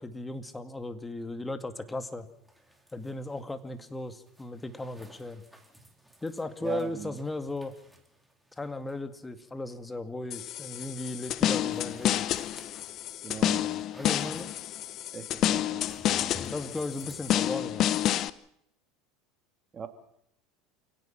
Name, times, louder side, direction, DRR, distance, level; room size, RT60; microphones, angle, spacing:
voice 1, 0.0-2.3 2.9-5.4 6.2-7.7 8.6-12.3 13.9-14.5 16.4-17.9, left 2 dB, 15° left, 9 dB, 2.3 m, -36 dB
sound 1, 1.9-17.3, left 1 dB, 5° right, 3.9 m, -55 dB
voice 2, 6.6-7.2 13.2-13.8 15.1-15.8 19.7-19.9, right 7 dB, 30° right, 7 dB, 3.1 m, -39 dB
sound 2, 10.3-18.3, left 12 dB, 50° left, 0.9 m, -29 dB
28.5 x 17.5 x 6.0 m, 0.72 s
hypercardioid pair, 90°, 0 cm